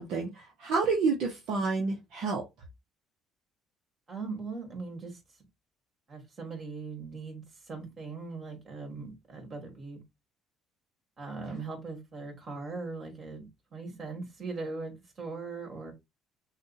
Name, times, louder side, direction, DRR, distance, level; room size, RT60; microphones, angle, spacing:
voice 1, 0.0-2.4, right 4 dB, 65° right, 1.0 m, -29 dB
voice 2, 4.1-5.2 6.1-10.0 11.2-15.9, right 4 dB, 40° right, 2.7 m, -40 dB
6.4 x 2.5 x 2.8 m
hypercardioid pair, 60°, 0 cm